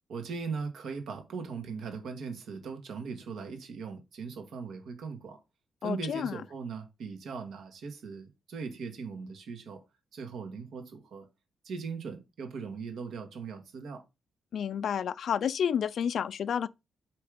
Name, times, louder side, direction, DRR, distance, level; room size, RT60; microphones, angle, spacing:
voice 1, 0.1-5.4 5.8-9.8 10.1-11.3 11.6-14.0, right 5 dB, 70° right, 2.0 m, -39 dB
voice 2, 5.8-6.4 14.5-16.7, left 8 dB, 60° left, 0.4 m, -30 dB
7.8 x 3.3 x 5.1 m
cardioid pair, 135°, 0 cm